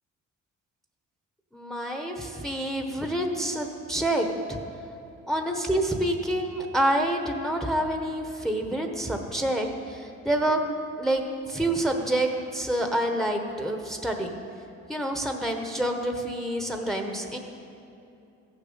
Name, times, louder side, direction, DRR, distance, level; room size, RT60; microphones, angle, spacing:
voice 1, 1.5-4.6 5.3-10.6 11.0-11.2 11.5-14.4 14.9-17.4, right 1 dB, ahead, 3 dB, 1.0 m, -27 dB
14.5 x 6.6 x 5.6 m, 2.7 s
cardioid pair, 90°, 30 cm